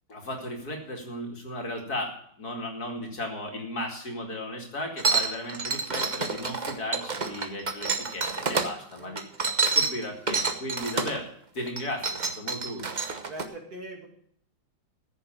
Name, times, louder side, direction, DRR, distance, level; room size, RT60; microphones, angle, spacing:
voice 1, 0.1-9.2 9.7-11.3 11.5-12.9, left 1 dB, 50° left, 2 dB, 2.7 m, -35 dB
sound 1, 5.0-8.7 9.2-11.2 11.7-13.4, right 4 dB, 35° right, 0.8 m, -28 dB
voice 2, 13.3-14.1, right 1 dB, 50° right, 1 dB, 2.8 m, -41 dB
15.0 x 6.8 x 7.3 m, 0.66 s
omnidirectional pair, 2.1 m